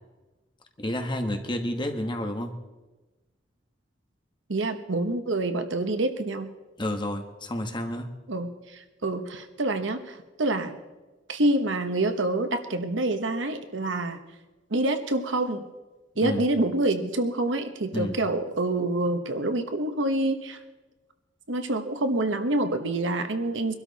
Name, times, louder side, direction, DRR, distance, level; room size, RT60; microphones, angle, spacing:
voice 1, 0.8-2.5 6.8-8.1 16.2-16.4 17.9-18.1, left 1 dB, 25° left, 5 dB, 1.4 m, -30 dB
voice 2, 4.5-6.5 8.3-10.8 11.3-14.2 14.7-15.6 16.2-20.6 21.5-23.7, right 2 dB, 70° right, 8 dB, 1.2 m, -27 dB
23.0 x 12.5 x 4.1 m, 1.2 s
head